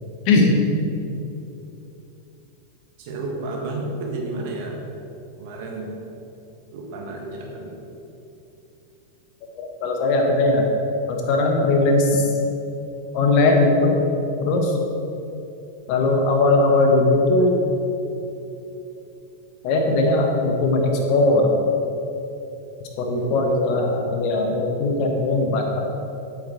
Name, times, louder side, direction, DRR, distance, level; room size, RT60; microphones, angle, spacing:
voice 1, 0.3-0.6 9.5-10.7 11.1-12.3 13.1-14.0 14.4-14.7 15.9-17.6 19.6-21.6 23.0-25.8, left 2 dB, 45° left, 2 dB, 1.2 m, -19 dB
voice 2, 3.0-4.8 5.4-5.9 6.7-7.7 23.1-24.0, right 2 dB, 50° right, 0 dB, 1.7 m, -31 dB
8.0 x 7.9 x 4.5 m, 2.9 s
figure-of-eight pair, 90°, 0 cm